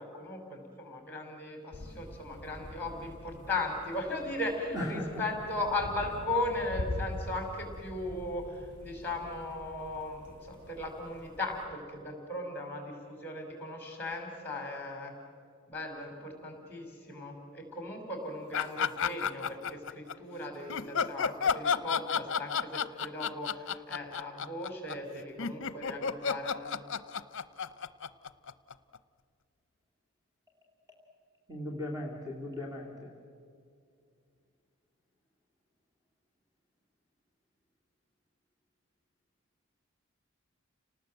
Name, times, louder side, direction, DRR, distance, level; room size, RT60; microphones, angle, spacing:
voice 1, 0.0-15.1 15.7-26.8, left 2 dB, 10° left, 3 dB, 4.9 m, -37 dB
sound 1, 1.7-11.6, left 2 dB, 55° right, 3.5 m, -44 dB
voice 2, 4.7-5.2 31.5-33.1, left 1 dB, 15° right, -2 dB, 2.6 m, -37 dB
sound 2, 18.5-20.1 20.7-29.0, left 6 dB, 55° left, 0.7 m, -31 dB
30.0 x 19.0 x 7.9 m, 2.3 s
head